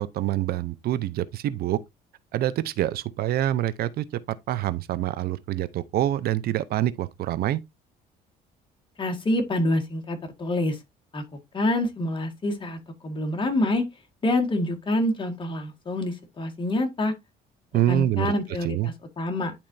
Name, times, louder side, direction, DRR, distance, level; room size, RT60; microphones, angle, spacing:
voice 1, 0.0-1.8 2.3-7.6 17.7-18.3 18.6-18.9, right 13 dB, 65° right, 0.6 m, -26 dB
voice 2, 9.0-10.8 11.1-11.2 11.5-13.8 14.2-17.1 17.9-19.5, left 1 dB, 30° left, 1.8 m, -26 dB
10.5 x 4.3 x 2.6 m
cardioid pair, 110°, 17 cm